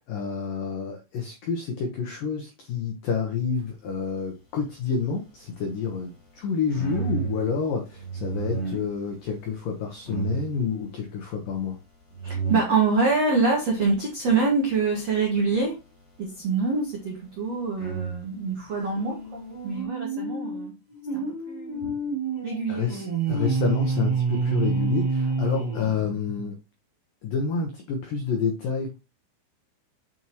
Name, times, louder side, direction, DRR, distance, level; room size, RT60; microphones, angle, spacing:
voice 1, 0.1-11.8 22.7-26.6 27.2-29.0, left 6 dB, 85° left, 3 dB, 1.9 m, -29 dB
sound 1, 4.4-19.8, right 5 dB, 20° left, 2.0 m, -37 dB
voice 2, 12.2-15.8 16.2-20.7 21.1-21.9 22.4-23.1, right 4 dB, 75° right, -1 dB, 1.5 m, -25 dB
sound 2, 18.9-26.4, right 3 dB, 10° right, 2.6 m, -28 dB
9.2 x 5.4 x 3.0 m, 0.26 s
omnidirectional pair, 5.7 m